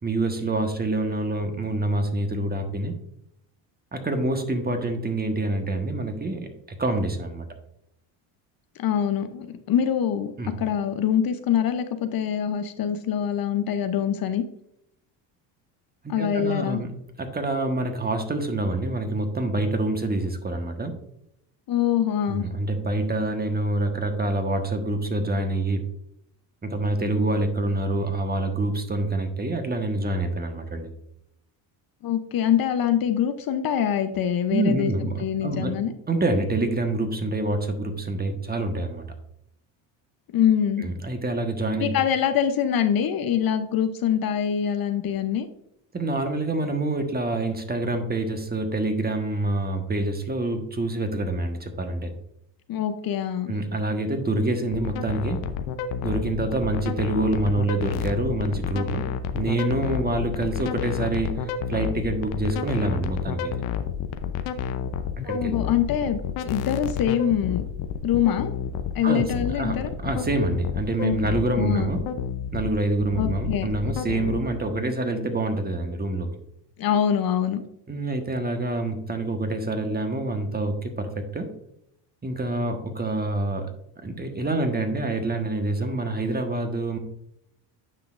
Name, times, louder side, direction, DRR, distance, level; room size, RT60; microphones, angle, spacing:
voice 1, 0.0-3.0 3.9-7.4 10.4-10.6 16.0-16.9 17.2-21.0 22.3-25.9 26.6-30.9 34.5-35.7 36.1-39.1 40.8-42.0 45.9-52.1 53.5-55.5 56.0-59.1 59.3-63.5 65.3-65.5 69.0-69.2 69.5-69.8 70.0-72.0 72.5-76.3 77.9-81.5 82.2-83.7 84.0-87.0, right 2 dB, 20° right, 5 dB, 1.3 m, -26 dB
voice 2, 8.8-14.4 16.1-16.8 21.7-22.5 32.0-34.9 35.2-35.9 40.3-40.9 41.8-45.5 52.7-53.5 65.2-67.6 68.0-68.5 68.9-69.9 71.0-71.2 71.6-71.9 73.2-73.7 76.8-77.6, left 9 dB, 50° left, 9 dB, 0.7 m, -24 dB
sound 1, 54.7-74.4, left 8 dB, 85° left, 0.8 m, -30 dB
9.7 x 5.8 x 2.5 m, 0.77 s
supercardioid pair, 85°, 47 cm